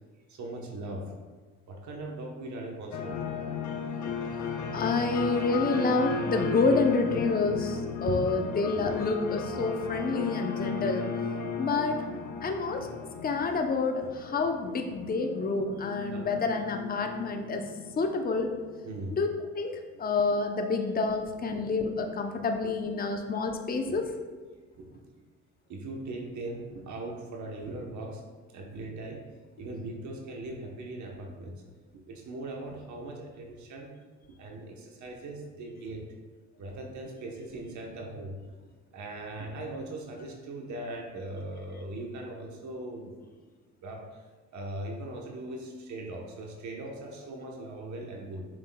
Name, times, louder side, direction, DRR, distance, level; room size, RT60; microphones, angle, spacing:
voice 1, 0.3-1.1 1.7-3.6 7.4-7.6 8.1-8.9 12.8-12.9 13.4-13.5 14.0-14.1 16.1-16.3 18.8-19.2 19.9-20.0 21.5-21.7 22.3-22.4 23.2-23.3 23.9-24.0 24.5-25.1 25.7-28.2 28.5-29.2 29.6-31.6 31.9-33.9 34.4-36.0 36.6-38.5 38.9-43.4 43.8-44.2 44.5-48.5, right 2 dB, 70° right, 1 dB, 1.0 m, -40 dB
sound 1, 2.9-19.2, left 4 dB, 70° left, 0.8 m, -35 dB
voice 2, 4.7-11.1 11.6-12.0 12.4-12.9 13.2-17.6 18.0-18.6 19.1-19.3 19.5-24.0, left 4 dB, 30° left, 4 dB, 0.7 m, -28 dB
7.5 x 6.2 x 2.2 m, 1.4 s
cardioid pair, 90°, 30 cm